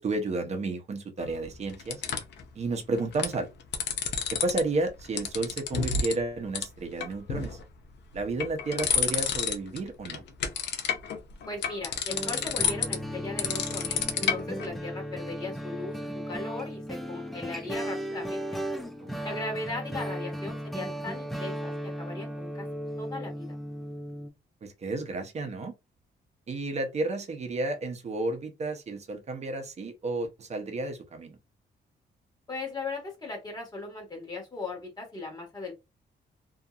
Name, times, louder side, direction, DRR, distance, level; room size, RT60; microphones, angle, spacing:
voice 1, 0.0-2.0 2.5-3.5 4.3-7.6 8.1-10.2 19.0-19.4 24.6-25.7 26.5-31.4, right 2 dB, 40° right, 0.7 m, -32 dB
sound 1, 1.2-2.4 3.0-3.3 3.6-4.6 4.9-6.2 6.5-6.6 7.0-7.6 8.1-9.8 10.0-14.7, left 7 dB, 75° left, 0.6 m, -30 dB
voice 2, 11.5-16.0 16.3-18.4 19.2-22.7 23.0-23.5 32.5-35.7, left 3 dB, 20° left, 1.5 m, -38 dB
sound 2, 12.1-24.3, equal, ahead, 0.4 m, -36 dB
2.8 x 2.5 x 2.4 m
cardioid pair, 140°, 18 cm